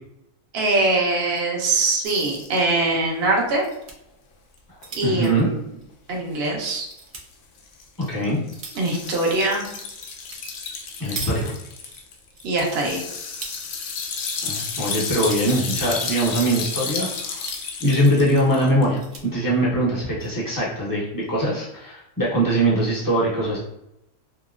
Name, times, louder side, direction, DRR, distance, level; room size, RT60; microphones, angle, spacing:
voice 1, 0.5-3.6 4.9-5.6 6.1-6.9 8.7-9.6 12.4-13.0, right 2 dB, 50° right, -1 dB, 0.8 m, -22 dB
sound 1, 1.1-1.5 1.9-2.0 2.2-2.3 3.3-4.0 4.5-6.3 6.7-7.3 7.9-8.9 10.1-10.4 10.7-12.0 12.3-13.6 14.0-14.6 14.9-15.5 16.0-16.5 17.2-17.9 18.4-18.5 18.8-19.2 20.0-20.3, right 4 dB, 80° right, 0.4 m, -40 dB
sound 2, 2.0-2.6 4.5-4.6 4.8-5.1 6.8-6.9 7.6-18.8, left 5 dB, 65° left, 0.8 m, -32 dB
voice 2, 5.0-5.5 8.1-8.4 11.0-11.6 14.4-23.6, right 1 dB, 20° left, -6 dB, 0.7 m, -22 dB
3.0 x 2.8 x 2.4 m, 0.84 s
omnidirectional pair, 1.6 m